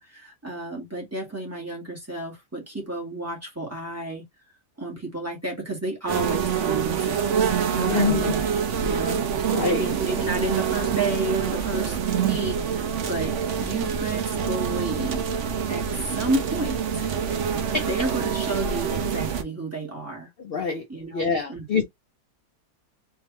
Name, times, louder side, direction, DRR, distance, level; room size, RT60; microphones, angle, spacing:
voice 1, 0.0-4.2 4.8-8.5 8.8-17.0 17.5-20.3 20.9-21.8, right 2 dB, 10° right, 1.9 m, -31 dB
sound 1, 6.1-19.4, right 7 dB, 55° right, 0.9 m, -26 dB
voice 2, 7.8-8.3 9.1-9.2 9.5-9.8 17.7-17.8 20.4-20.8 21.1-21.8, left 5 dB, 55° left, 0.6 m, -25 dB
3.7 x 3.3 x 3.0 m
omnidirectional pair, 1.8 m